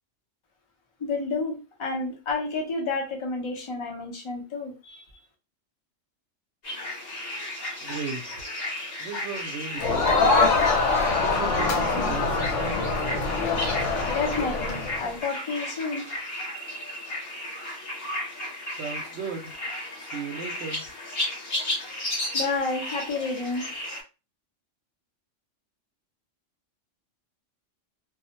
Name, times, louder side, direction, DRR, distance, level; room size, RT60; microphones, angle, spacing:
voice 1, 1.0-5.0 14.1-16.1 22.3-23.7, left 3 dB, 35° left, 1 dB, 0.5 m, -30 dB
sound 1, 6.6-24.0, left 1 dB, 55° left, 1.1 m, -34 dB
voice 2, 7.8-8.5 9.0-10.1 11.2-12.9 18.7-19.5 20.0-20.8, right 5 dB, 70° right, 1 dB, 0.8 m, -36 dB
Crowd, 9.8-15.1, left 3 dB, 75° left, 1.0 m, -24 dB
2.3 x 2.0 x 2.8 m, 0.29 s
omnidirectional pair, 1.3 m